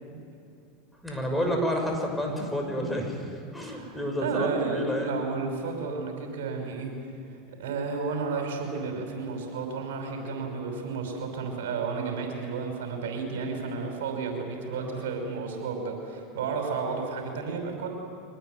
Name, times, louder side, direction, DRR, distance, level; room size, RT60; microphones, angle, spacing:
voice 1, 1.0-5.1 14.7-15.1, equal, 5° left, 1 dB, 6.3 m, -30 dB
voice 2, 3.7-6.9 7.6-17.9, right 4 dB, 80° right, 3 dB, 5.7 m, -32 dB
24.5 x 19.5 x 9.5 m, 2.6 s
hypercardioid pair, 105°, 0 cm